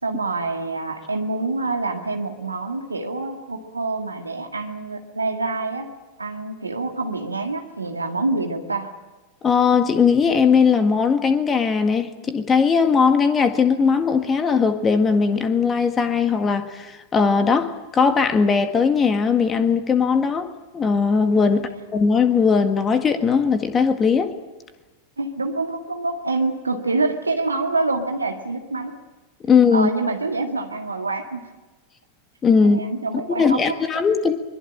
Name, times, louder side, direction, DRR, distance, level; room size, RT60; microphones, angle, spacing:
voice 1, 0.0-5.9 6.2-8.9 21.5-21.6 25.2-29.0 29.7-31.4 32.6-33.8, right 3 dB, 80° right, 1.9 m, -26 dB
voice 2, 9.4-24.3 29.4-29.9 32.4-32.8 33.3-34.4, left 5 dB, 20° left, 1.8 m, -19 dB
24.0 x 21.5 x 8.7 m
figure-of-eight pair, 90°, 0 cm